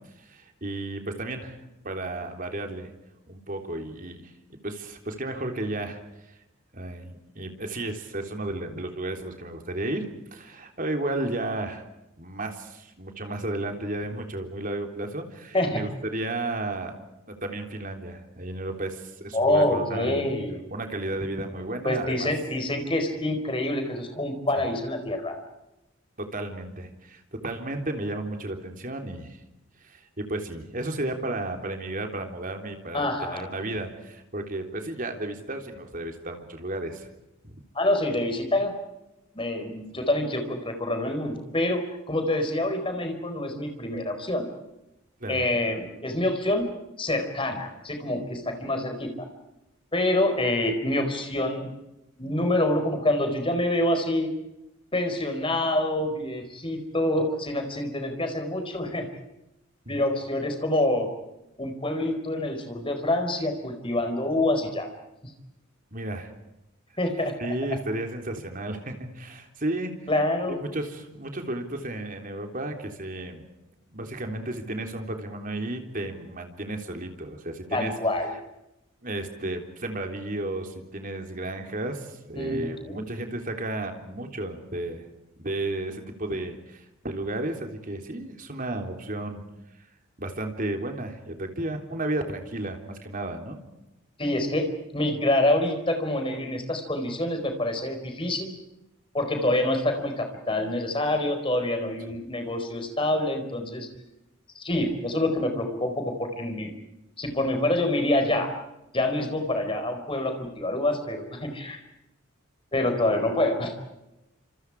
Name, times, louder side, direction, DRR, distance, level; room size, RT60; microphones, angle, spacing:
voice 1, 0.2-1.6 1.8-2.9 3.3-6.0 6.7-10.1 10.3-11.8 12.2-17.0 17.3-20.2 20.7-22.3 26.2-29.4 29.8-37.1 37.4-37.6 39.9-40.1 45.2-45.5 59.9-60.0 65.9-66.3 67.4-69.9 70.5-73.4 73.9-77.9 79.0-85.1 85.4-89.4 90.2-93.6, right 1 dB, 40° right, 4 dB, 3.6 m, -33 dB
voice 2, 19.3-20.6 21.8-25.4 32.9-33.5 37.7-38.7 39.3-44.5 45.3-46.6 47.0-49.3 49.9-51.7 52.2-54.3 54.9-59.1 59.9-61.1 61.6-64.9 65.2-65.3 67.0-67.4 70.1-70.6 77.7-78.3 82.3-83.1 94.2-98.6 99.1-103.9 104.5-106.7 107.2-108.5 108.9-111.8 112.7-113.8, left 1 dB, 25° left, 6 dB, 4.6 m, -26 dB
30.0 x 27.5 x 4.9 m, 0.92 s
head